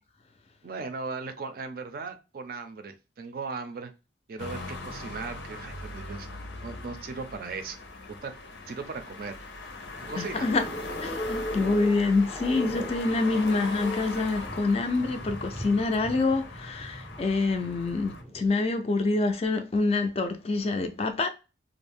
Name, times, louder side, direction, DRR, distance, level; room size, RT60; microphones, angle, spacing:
voice 1, 0.6-3.9 4.3-6.3 6.6-7.8 8.2-8.3 8.7-9.4 10.1-10.5, right 4 dB, 50° right, 0.4 m, -37 dB
sound 1, 4.4-18.2, left 2 dB, 80° left, 0.6 m, -40 dB
sound 2, 9.8-18.5, equal, 5° right, 0.6 m, -39 dB
voice 2, 10.2-10.6 11.0-21.3, left 3 dB, 30° left, 0.3 m, -26 dB
2.5 x 2.0 x 3.4 m
head